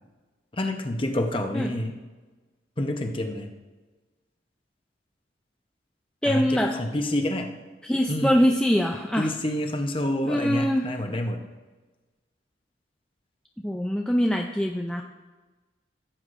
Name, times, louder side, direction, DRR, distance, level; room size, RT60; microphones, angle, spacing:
voice 1, 0.5-1.9 2.8-3.5 6.3-7.5 8.1-8.4 9.1-11.4, left 1 dB, 30° left, 5 dB, 0.7 m, -28 dB
voice 2, 6.2-6.7 7.8-9.3 10.2-10.9 13.6-15.0, equal, 5° left, 1 dB, 0.3 m, -23 dB
15.5 x 8.0 x 2.5 m, 1.3 s
head